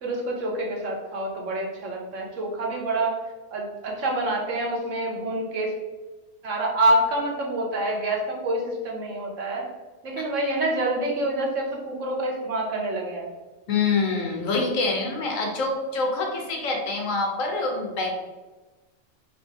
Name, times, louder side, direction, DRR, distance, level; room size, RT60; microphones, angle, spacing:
voice 1, 0.0-3.2 3.5-5.7 6.4-9.6 10.0-13.3, right 1 dB, 75° right, -1 dB, 1.3 m, -27 dB
voice 2, 13.7-18.1, left 3 dB, 80° left, 1 dB, 1.4 m, -26 dB
3.7 x 2.7 x 4.6 m, 1.2 s
omnidirectional pair, 1.3 m